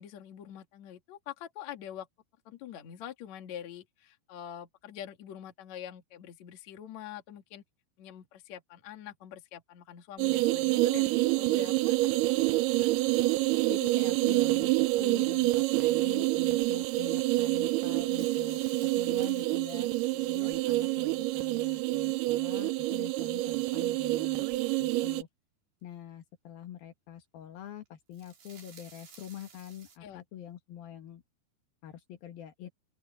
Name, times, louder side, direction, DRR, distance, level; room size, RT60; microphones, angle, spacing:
voice 1, 0.0-2.1 2.5-7.6 8.0-12.9 20.1-20.3 30.0-30.2, left 10 dB, 50° left, 2.8 m, -45 dB
sound 1, 10.2-25.2, right 20 dB, 85° right, 2.6 m, -27 dB
voice 2, 13.7-19.9 20.3-24.5 24.8-25.3 25.8-31.2 31.8-32.7, left 11 dB, 70° left, 3.4 m, -45 dB
sound 2, 18.1-24.8 27.9-30.0, right 6 dB, 65° right, 5.8 m, -57 dB
open air
omnidirectional pair, 4.5 m